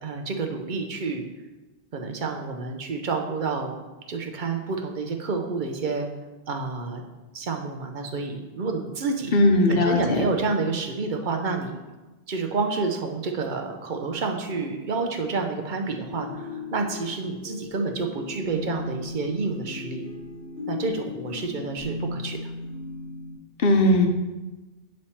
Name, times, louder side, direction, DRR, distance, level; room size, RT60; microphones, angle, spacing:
voice 1, 0.0-1.3 1.9-3.7 4.1-6.1 6.5-7.0 7.3-9.4 9.7-11.8 12.3-20.0 20.7-22.4, right 4 dB, 55° right, 3 dB, 0.7 m, -29 dB
voice 2, 9.3-10.2 23.6-24.1, left 1 dB, 65° left, 4 dB, 0.9 m, -18 dB
sound 1, 16.1-23.4, left 3 dB, 35° right, 1.4 m, -36 dB
8.2 x 3.2 x 4.2 m, 1.1 s
omnidirectional pair, 1.0 m